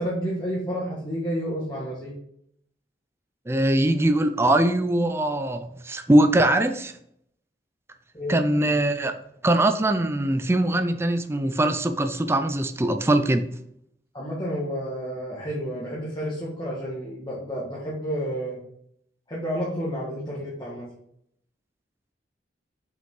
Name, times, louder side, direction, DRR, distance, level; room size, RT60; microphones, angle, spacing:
voice 1, 0.0-2.1 8.1-8.3 14.1-18.6 19.3-20.8, equal, 25° left, 1.4 m, -30 dB
voice 2, 3.5-6.9 8.3-13.5, right 1 dB, 15° right, 0.4 m, -22 dB
5.6 x 5.1 x 3.8 m
head